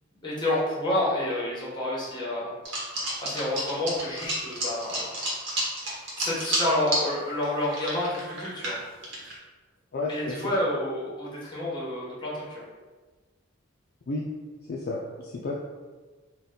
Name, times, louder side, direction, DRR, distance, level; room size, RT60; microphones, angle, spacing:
voice 1, 0.2-2.5 3.2-5.1 6.2-8.8 10.1-12.6, left 1 dB, 20° left, -6 dB, 1.1 m, -29 dB
sound 1, 2.6-7.1 7.4-9.4, right 1 dB, 60° right, 1.0 m, -30 dB
voice 2, 9.9-10.5 14.1-14.2 14.7-15.5, left 2 dB, 50° left, -3 dB, 0.4 m, -32 dB
3.9 x 2.2 x 3.7 m, 1.3 s
head